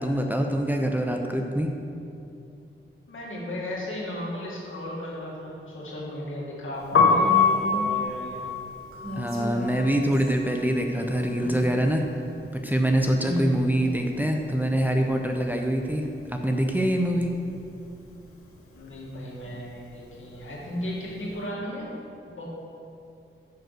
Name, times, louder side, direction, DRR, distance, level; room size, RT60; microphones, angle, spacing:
voice 1, 0.0-1.7 9.2-12.0 12.5-17.3, right 1 dB, 10° right, 2 dB, 0.7 m, -25 dB
voice 2, 3.1-8.5 13.2-13.6 18.7-21.9 22.3-22.4, equal, 70° left, -5 dB, 2.2 m, -35 dB
Piano, 6.8-12.8 13.0-14.6 14.9-21.3, left 4 dB, 85° left, 1.1 m, -27 dB
Female speech woman speaking, 7.2-7.9 8.9-10.4 10.9-11.8, left 1 dB, 85° right, 1.8 m, -36 dB
6.7 x 6.0 x 6.6 m, 2.6 s
wide cardioid pair, 70°, 21 cm